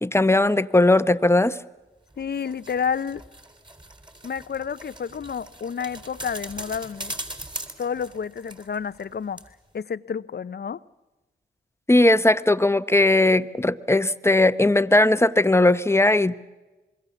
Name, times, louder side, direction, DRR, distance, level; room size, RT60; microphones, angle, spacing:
voice 1, 0.0-1.6 11.9-16.4, left 2 dB, 10° left, 1.1 m, -18 dB
sound 1, 2.1-9.1 9.4-9.5, right 1 dB, 20° right, 4.0 m, -40 dB
voice 2, 2.2-3.2 4.2-7.1 7.8-9.4 9.7-10.8, left 7 dB, 50° left, 0.8 m, -30 dB
27.0 x 22.5 x 7.1 m
supercardioid pair, 40°, 21 cm